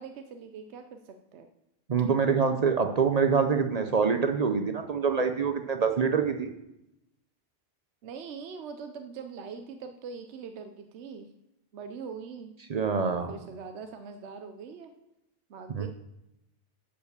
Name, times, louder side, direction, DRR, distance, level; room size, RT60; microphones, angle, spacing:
voice 1, 0.0-1.5 8.0-11.3 11.7-12.5 13.1-14.9 15.5-15.9, right 5 dB, 75° right, 7 dB, 0.9 m, -42 dB
voice 2, 1.9-6.5 12.7-13.3 15.8-15.9, right 5 dB, 45° right, 6 dB, 0.6 m, -25 dB
9.9 x 4.8 x 6.7 m, 0.88 s
omnidirectional pair, 1.2 m